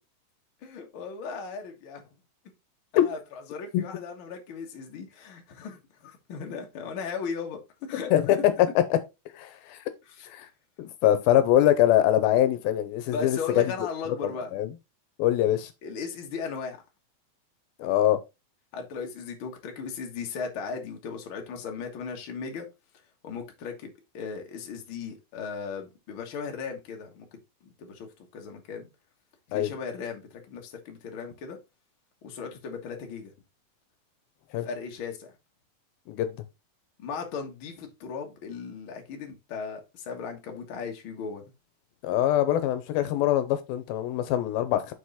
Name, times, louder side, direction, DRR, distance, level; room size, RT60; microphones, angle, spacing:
voice 1, 0.6-2.0 2.9-3.2 3.5-8.4 10.2-10.3 13.1-14.5 15.8-16.8 18.7-22.7 23.2-27.3 27.6-28.1 28.3-28.9 29.5-31.6 32.2-33.3 34.6-35.3 37.0-41.4, left 5 dB, 50° left, 1.6 m, -37 dB
voice 2, 8.1-9.0 9.4-9.8 10.3-10.5 10.8-13.6 14.1-14.7 15.2-15.7 17.8-18.2 29.5-29.7 34.5-34.7 36.1-36.3 42.0-44.9, left 12 dB, 85° left, 2.6 m, -23 dB
6.3 x 4.8 x 4.1 m
omnidirectional pair, 4.3 m